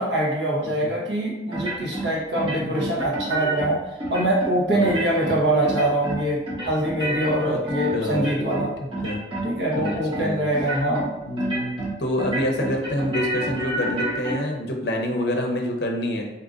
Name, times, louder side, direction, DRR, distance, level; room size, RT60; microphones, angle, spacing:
voice 1, 0.0-3.8 4.1-8.7 9.4-11.1, right 1 dB, 85° right, -4 dB, 1.0 m, -24 dB
sound 1, 1.5-2.1 2.3-3.7 4.0-4.5 4.8-5.4 5.6-6.2 6.5-8.7 8.9-9.4 9.7-10.2 10.5-11.0 11.4-11.9 12.2-14.3, right 2 dB, 30° right, 0.8 m, -28 dB
voice 2, 4.7-5.4 7.5-7.6 7.9-9.2 9.8-10.5 11.3-16.3, left 1 dB, 65° left, 2 dB, 0.6 m, -27 dB
2.7 x 2.5 x 3.7 m, 1.0 s
head